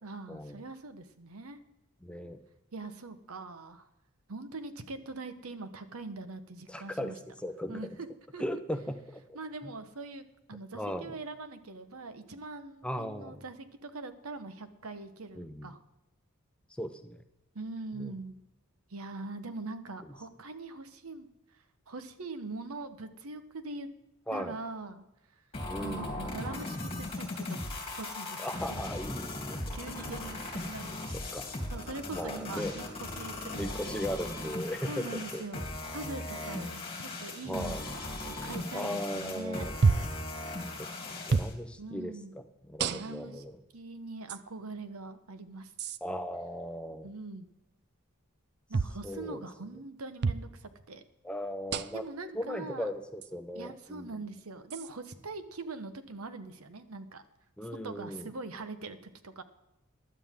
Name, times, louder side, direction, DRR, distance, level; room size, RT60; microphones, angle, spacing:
voice 1, 0.0-1.6 2.7-3.9 4.3-7.2 7.7-8.1 8.3-8.4 9.3-10.2 10.5-15.8 17.5-18.4 18.9-21.3 21.9-23.9 24.3-25.0 25.8-27.6 28.0-28.9 29.7-31.4 31.7-32.8 33.2-34.1 34.8-35.7 35.9-39.7 41.8-42.3 42.9-43.4 43.7-45.7 47.0-47.5 48.7-51.0 51.9-52.9 53.5-57.2 57.8-59.4, right 3 dB, 80° right, 10 dB, 1.1 m, -42 dB
voice 2, 2.0-2.4 6.7-7.1 7.4-8.0 8.4-9.4 10.7-11.1 12.8-13.4 15.4-15.7 16.8-17.2 17.9-18.1 24.3-24.6 25.7-26.2 28.4-29.6 31.3-31.5 32.1-32.8 33.6-35.4 37.5-37.9 38.7-39.8 40.8-43.5 46.0-47.1 49.0-49.4 51.2-52.0 52.3-54.1 57.6-58.3, equal, 5° left, 8 dB, 0.7 m, -37 dB
sound 1, 25.5-41.5, left 2 dB, 25° left, 2.9 m, -38 dB
sound 2, 39.8-40.2 41.3-41.6 42.8-43.3 44.3-44.4 45.8-46.0 48.7-49.0 50.2-50.5 51.7-52.1 53.2-53.3 54.7-54.9, right 4 dB, 50° right, 0.5 m, -28 dB
16.0 x 11.5 x 3.7 m, 0.92 s
head